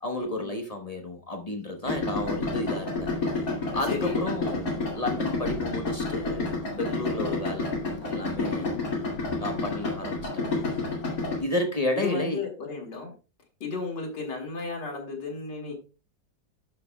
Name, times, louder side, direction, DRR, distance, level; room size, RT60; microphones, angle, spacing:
voice 1, 0.0-7.7 8.0-8.7 9.4-10.8 11.4-12.4, left 1 dB, 25° left, 0.9 m, -32 dB
Idling, 1.8-11.4, left 3 dB, 55° left, 2.8 m, -30 dB
voice 2, 3.9-4.2 8.5-8.9 11.9-13.1 13.6-15.7, left 3 dB, 80° left, 2.5 m, -34 dB
11.5 x 5.9 x 2.2 m
omnidirectional pair, 1.9 m